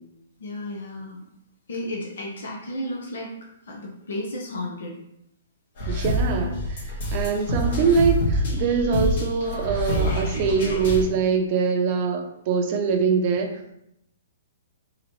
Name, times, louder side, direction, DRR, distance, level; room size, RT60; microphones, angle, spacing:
voice 1, 0.4-1.2 1.7-3.3 3.6-5.0, left 1 dB, 75° left, -1 dB, 0.9 m, -33 dB
sound 1, 5.8-11.0, equal, 55° left, 1.4 m, -26 dB
voice 2, 5.9-13.7, right 5 dB, 40° right, 4 dB, 0.6 m, -23 dB
3.9 x 2.9 x 3.1 m, 0.79 s
hypercardioid pair, 150°, 0 cm